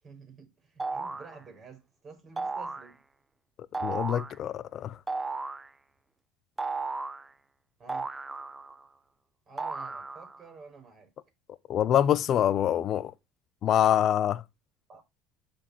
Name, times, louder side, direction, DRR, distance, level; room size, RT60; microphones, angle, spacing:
voice 1, 0.0-3.0 7.8-8.1 9.5-11.1 14.9-15.0, right 5 dB, 35° right, 5.4 m, -50 dB
sound 1, 0.8-1.3 2.4-2.9 3.7-4.4 5.1-5.7 6.6-7.3 7.9-8.8 9.6-10.4, right 3 dB, 15° right, 0.5 m, -34 dB
voice 2, 3.8-5.0 11.7-13.1 13.6-14.4, left 10 dB, 50° left, 0.5 m, -25 dB
12.5 x 4.4 x 2.9 m
supercardioid pair, 95°, 0 cm